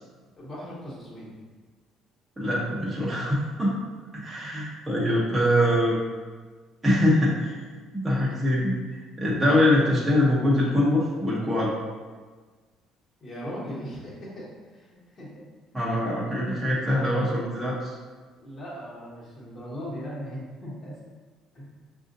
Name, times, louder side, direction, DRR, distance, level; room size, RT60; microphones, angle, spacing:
voice 1, 0.4-1.4 13.2-15.3 18.4-21.0 21.5-21.7, equal, 30° left, -6 dB, 1.2 m, -38 dB
voice 2, 2.4-3.8 4.1-6.0 6.8-7.5 7.9-8.7 9.2-11.7 15.7-18.0, left 1 dB, 10° right, -7 dB, 0.7 m, -23 dB
6.1 x 2.5 x 2.6 m, 1.4 s
cardioid pair, 155°, 0 cm